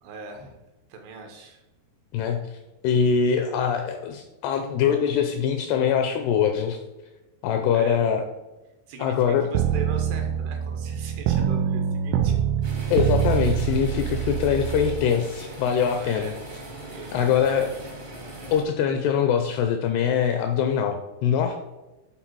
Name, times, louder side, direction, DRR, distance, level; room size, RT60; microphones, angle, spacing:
voice 1, 0.0-0.6 0.9-1.6 7.7-8.0 8.9-12.4 14.2-14.4 16.0-16.4 16.9-17.9, right 4 dB, 75° right, 4 dB, 2.8 m, -40 dB
voice 2, 2.8-6.8 7.4-8.2 9.0-9.5 12.9-16.3 17.1-17.7 18.5-21.6, left 7 dB, 80° left, 6 dB, 2.4 m, -23 dB
sound 1, 9.6-15.1, right 9 dB, 90° right, 3.1 m, -25 dB
sound 2, 12.6-18.6, right 1 dB, 45° right, 0.9 m, -40 dB
11.5 x 4.1 x 4.6 m, 1.1 s
omnidirectional pair, 5.3 m